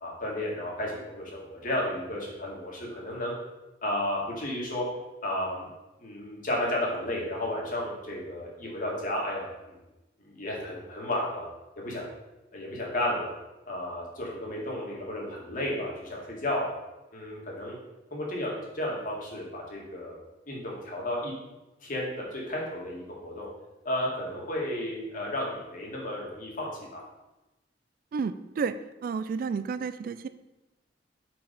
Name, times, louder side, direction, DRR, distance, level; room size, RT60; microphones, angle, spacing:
voice 1, 0.0-3.3 3.8-4.9 5.2-5.7 6.0-9.8 10.2-11.5 11.8-12.0 12.5-13.3 13.7-16.7 17.1-17.7 18.1-21.3 21.8-23.5 23.8-27.0, left 1 dB, 50° left, -2 dB, 1.8 m, -33 dB
voice 2, 28.1-28.7 29.0-30.3, right 5 dB, 50° right, 12 dB, 0.3 m, -31 dB
5.2 x 4.7 x 5.2 m, 1.0 s
head